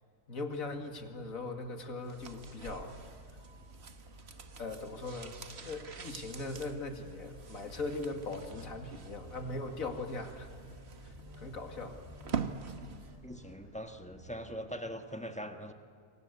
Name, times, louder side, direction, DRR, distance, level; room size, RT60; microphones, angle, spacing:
voice 1, 0.3-2.9 4.6-10.5 11.0-12.0, left 2 dB, 55° left, 5 dB, 2.6 m, -40 dB
Motor vehicle (road), 0.5-14.6, right 2 dB, 65° right, 7.4 m, -60 dB
sound 1, 2.0-13.2 13.5-13.6, right 5 dB, 45° right, 1.5 m, -45 dB
sound 2, 7.7-8.8 9.2-9.5 9.8-10.1 10.3-13.6, left 3 dB, 15° right, 4.8 m, -54 dB
voice 2, 13.2-15.7, equal, 5° left, 6 dB, 1.4 m, -42 dB
28.5 x 24.0 x 8.3 m, 2.2 s
omnidirectional pair, 1.7 m